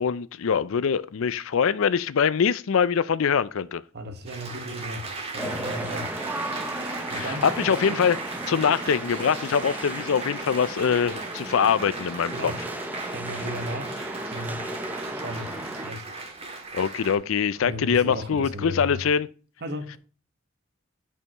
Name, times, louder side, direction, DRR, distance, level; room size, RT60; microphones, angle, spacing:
voice 1, 0.0-3.8 7.1-8.2 8.5-12.5 16.7-19.3, left 7 dB, 70° left, 0.4 m, -23 dB
voice 2, 3.9-6.2 7.1-7.5 12.3-12.6 13.1-14.0 14.3-14.7 15.1-15.6 15.8-16.0 17.6-19.0 19.6-20.0, equal, 55° right, 1.4 m, -35 dB
Applause, 4.3-17.2, right 3 dB, 30° right, 1.7 m, -37 dB
sound 1, 5.4-15.9, right 1 dB, 10° right, 0.7 m, -35 dB
11.0 x 5.6 x 3.0 m
head